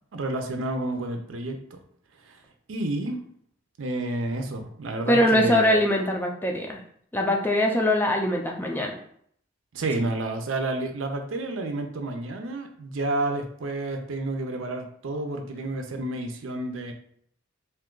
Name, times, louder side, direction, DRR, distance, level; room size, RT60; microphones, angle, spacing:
voice 1, 0.1-1.8 2.7-3.2 3.8-5.8 9.7-16.9, right 2 dB, 90° right, 5 dB, 0.5 m, -30 dB
voice 2, 5.1-6.8 7.1-8.9, left 1 dB, 10° left, 1 dB, 0.4 m, -22 dB
2.7 x 2.3 x 3.7 m, 0.64 s
head